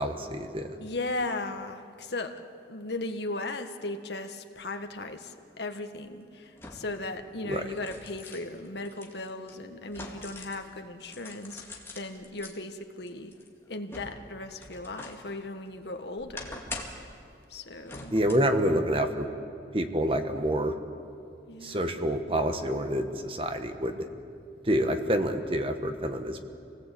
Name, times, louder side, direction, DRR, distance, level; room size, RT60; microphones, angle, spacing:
voice 1, 0.0-0.7 7.4-7.6 18.1-19.3 19.7-20.7 21.6-24.0 24.6-26.4, equal, 30° right, 7 dB, 1.3 m, -27 dB
voice 2, 0.8-2.3 2.7-13.3 13.7-16.6 17.5-18.2 21.5-21.9, left 2 dB, 70° left, 6 dB, 1.6 m, -37 dB
sound 1, 5.2-5.3 6.6-7.1 7.5-10.7 11.0-12.5 13.1-15.3 15.7-17.1 17.8-18.6 19.0-19.1, left 2 dB, 15° left, 2.2 m, -44 dB
27.0 x 18.5 x 8.5 m, 2.5 s
head